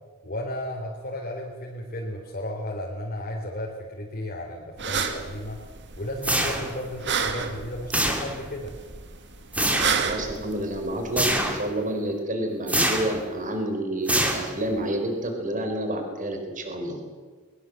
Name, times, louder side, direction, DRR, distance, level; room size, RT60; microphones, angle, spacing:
voice 1, 0.2-5.6 6.0-8.7, left 1 dB, 40° left, -2 dB, 3.7 m, -34 dB
sound 1, 4.8-11.5, right 6 dB, 55° right, 2.3 m, -31 dB
sound 2, 6.2-6.9 7.9-8.6 9.5-10.0 11.2-11.7 12.7-13.2 14.1-14.7, right 1 dB, 5° right, 3.0 m, -25 dB
voice 2, 10.0-17.0, right 1 dB, 35° right, 5 dB, 4.5 m, -29 dB
22.5 x 21.5 x 7.8 m, 1.5 s
head